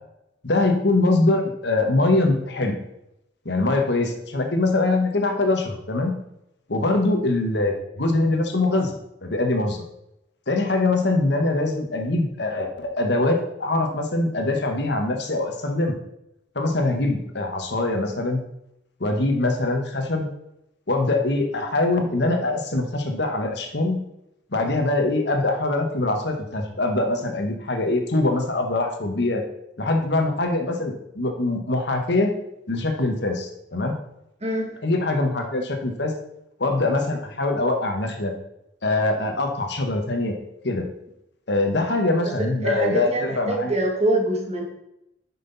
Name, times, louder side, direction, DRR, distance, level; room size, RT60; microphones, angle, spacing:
voice 1, 0.4-2.8 3.4-6.1 6.7-8.9 9.2-9.8 10.5-16.0 16.5-18.4 19.0-20.3 20.9-24.0 24.5-29.4 29.8-32.3 32.7-34.0 34.8-36.1 36.6-38.3 38.8-40.3 40.6-40.9 41.5-43.7, left 2 dB, 65° left, 4 dB, 1.5 m, -23 dB
voice 2, 34.4-34.7 42.6-44.6, right 1 dB, 35° right, 1 dB, 1.9 m, -24 dB
9.7 x 6.2 x 4.1 m, 0.83 s
head